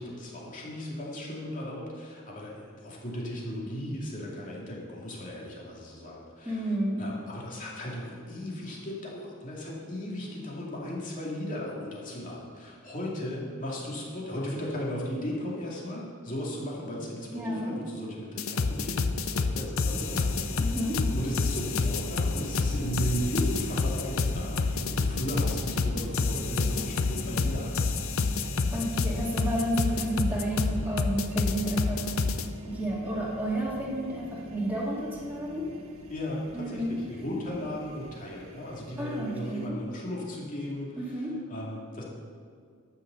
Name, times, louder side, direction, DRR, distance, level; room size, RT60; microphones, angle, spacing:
voice 1, 0.0-6.7 7.0-20.8 21.1-27.9 36.1-42.0, equal, 40° left, -4 dB, 2.5 m, -36 dB
voice 2, 6.4-7.0 17.3-17.8 20.6-21.0 28.7-32.3 32.6-35.7 36.5-37.0 39.0-39.8 41.0-41.3, right 1 dB, 10° right, -5 dB, 2.4 m, -31 dB
sound 1, 18.4-32.5, left 4 dB, 75° left, 0.6 m, -28 dB
sound 2, 19.9-39.7, equal, 80° right, 1.3 m, -41 dB
12.5 x 6.6 x 6.9 m, 2.2 s
head